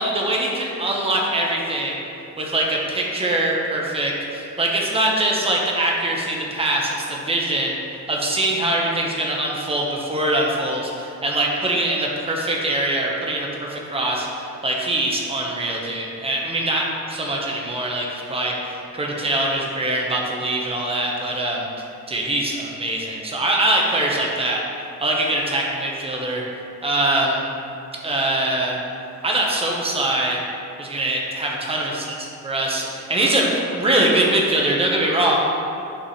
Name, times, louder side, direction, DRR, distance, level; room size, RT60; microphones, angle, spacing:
voice 1, 0.0-2.0 2.4-7.8 8.1-21.6 22.1-24.6 25.0-26.4 26.8-27.4 28.0-28.8 29.2-30.4 30.8-32.0 32.4-35.4, right 1 dB, 20° right, -2 dB, 1.1 m, -23 dB
9.8 x 5.4 x 3.2 m, 2.7 s
cardioid pair, 150°, 29 cm